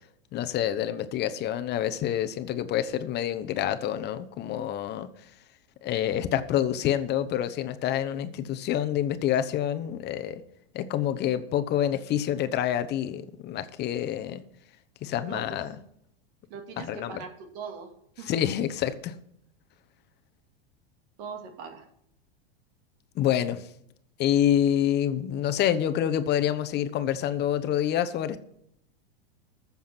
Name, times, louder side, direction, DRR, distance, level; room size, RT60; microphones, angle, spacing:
voice 1, 0.3-5.1 5.8-10.4 10.7-14.4 15.0-15.8 16.8-17.2 18.3-19.1 23.1-23.7 24.2-28.4, left 10 dB, 35° left, 10 dB, 1.0 m, -27 dB
voice 2, 15.2-15.6 16.5-18.4 21.2-21.9, right 6 dB, 55° right, 5 dB, 2.3 m, -41 dB
14.0 x 7.2 x 5.9 m, 0.75 s
supercardioid pair, 125°, 30 cm